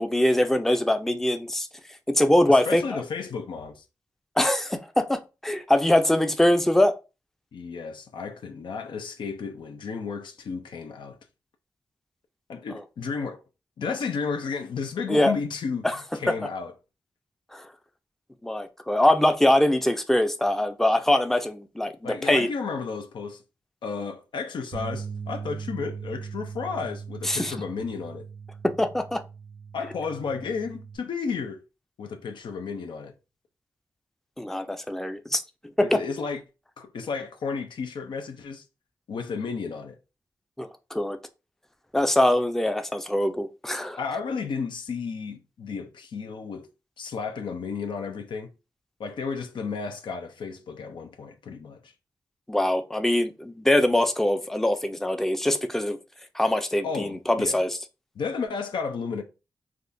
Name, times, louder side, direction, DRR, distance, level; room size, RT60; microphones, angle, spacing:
voice 1, 0.0-1.7 2.1-3.0 4.4-7.0 12.7-12.8 15.1-15.4 15.8-16.0 16.3-16.4 17.5-17.7 18.4-22.5 27.2-27.5 28.6-29.2 34.4-35.4 35.8-36.0 40.6-41.2 41.9-44.0 52.5-56.0 56.3-57.8, left 1 dB, 5° left, 0.4 m, -23 dB
voice 2, 2.4-3.8 7.5-11.2 12.5-13.4 13.8-15.9 16.1-16.7 22.0-23.4 23.8-28.2 29.7-31.6 32.0-33.1 35.8-36.4 36.8-38.6 39.1-40.0 44.0-46.7 47.0-48.5 49.0-51.9 56.8-57.6 58.2-59.2, left 5 dB, 85° left, 0.5 m, -33 dB
sound 1, 24.7-31.0, right 6 dB, 70° right, 0.6 m, -39 dB
3.5 x 2.4 x 2.6 m
cardioid pair, 50°, 8 cm